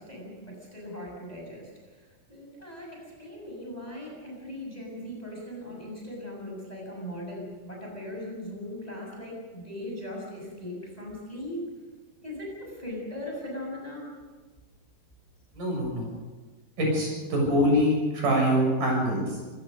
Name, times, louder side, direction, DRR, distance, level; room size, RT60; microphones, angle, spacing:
voice 1, 0.0-1.7 2.0-11.6 12.2-14.0, left 1 dB, 10° left, -1 dB, 6.4 m, -39 dB
voice 2, 15.5-16.1 16.8-19.3, equal, 60° right, 0 dB, 8.2 m, -24 dB
27.0 x 17.5 x 6.4 m, 1.3 s
omnidirectional pair, 4.2 m